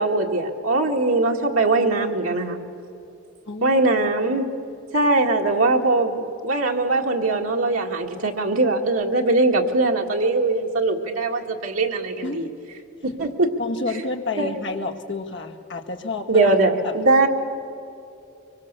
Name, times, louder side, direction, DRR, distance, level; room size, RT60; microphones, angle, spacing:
voice 1, 0.0-2.6 3.6-4.5 4.9-12.5 13.0-13.5 14.4-14.5 16.3-17.3, right 2 dB, 85° right, 1 dB, 1.9 m, -21 dB
voice 2, 3.5-3.8 12.2-12.7 13.6-16.6 16.8-17.0, left 3 dB, 60° left, 4 dB, 1.9 m, -30 dB
24.5 x 23.5 x 6.7 m, 2.7 s
head